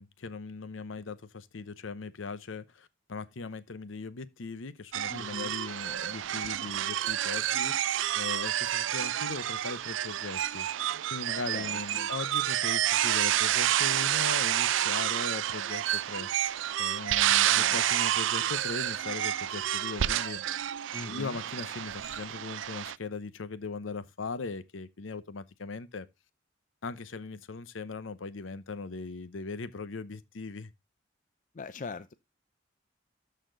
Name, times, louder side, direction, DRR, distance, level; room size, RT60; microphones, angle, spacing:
voice 1, 0.0-10.7 11.1-16.5 16.8-20.4 21.0-26.1 26.8-30.7, left 4 dB, 80° left, 0.8 m, -39 dB
sound 1, 4.9-23.0, right 12 dB, 70° right, 0.4 m, -29 dB
voice 2, 5.1-5.5 11.5-12.1 17.4-17.8 20.9-21.4 31.5-32.1, left 4 dB, 40° left, 0.5 m, -41 dB
13.0 x 4.3 x 3.8 m
head